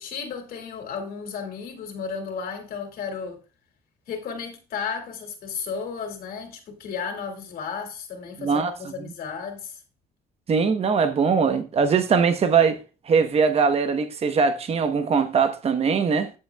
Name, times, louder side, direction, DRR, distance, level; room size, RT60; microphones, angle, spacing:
voice 1, 0.0-3.4 4.1-9.8, left 6 dB, 60° left, 2.3 m, -34 dB
voice 2, 8.4-8.7 10.5-12.8 13.0-16.3, right 5 dB, 35° right, 1.0 m, -21 dB
13.5 x 7.5 x 2.3 m
cardioid pair, 110°, 17 cm